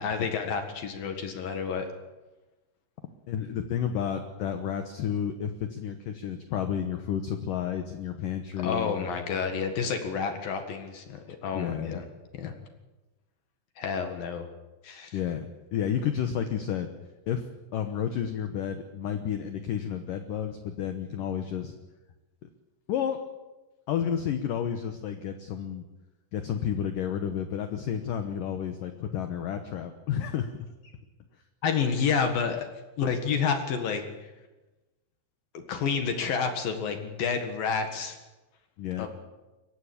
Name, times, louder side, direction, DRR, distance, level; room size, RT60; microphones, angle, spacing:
voice 1, 0.0-1.9 8.6-12.0 12.3-12.5 13.8-14.5 14.8-15.2 31.6-32.7 33.0-34.3 35.5-38.2 39.0-39.1, left 6 dB, 60° left, 6 dB, 3.0 m, -29 dB
voice 2, 3.3-9.2 11.5-12.0 15.1-15.5 15.7-16.9 17.3-21.7 22.9-23.2 23.9-25.8 26.3-30.7 38.8-39.1, left 8 dB, 75° left, 7 dB, 2.0 m, -31 dB
23.0 x 16.5 x 8.7 m, 1.1 s
omnidirectional pair, 5.4 m